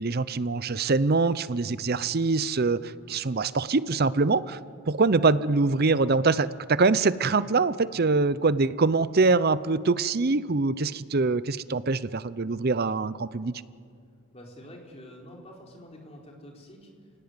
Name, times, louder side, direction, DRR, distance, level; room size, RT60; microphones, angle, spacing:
voice 1, 0.0-4.6 4.9-13.6, right 3 dB, 45° right, 16 dB, 0.6 m, -24 dB
voice 2, 3.1-3.4 14.3-17.1, equal, 25° left, 0 dB, 4.1 m, -47 dB
29.5 x 17.5 x 9.8 m, 2.3 s
head